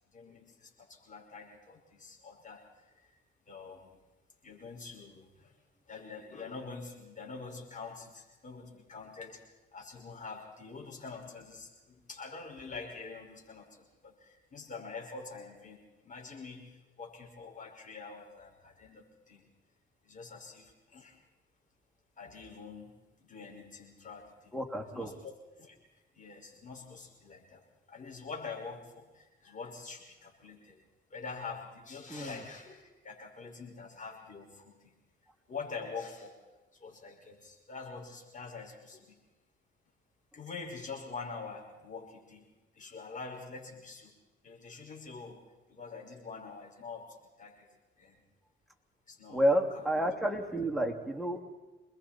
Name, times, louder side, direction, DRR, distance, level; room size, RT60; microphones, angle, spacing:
voice 1, 0.1-3.1 3.5-4.0 4.4-5.6 5.9-9.4 9.7-19.4 20.0-21.2 22.2-22.9 23.2-24.5 24.9-25.8 26.1-27.6 27.9-30.8 31.1-34.9 35.5-36.4 36.7-39.2 40.3-42.5 42.7-44.2 44.4-47.7 48.0-48.2 49.1-50.1 50.4-50.7, left 4 dB, 40° left, 0 dB, 5.7 m, -45 dB
voice 2, 24.5-25.1 32.1-32.3 49.3-51.4, equal, ahead, 3 dB, 3.0 m, -30 dB
28.0 x 21.0 x 4.5 m, 1.1 s
cardioid pair, 90°, 20 cm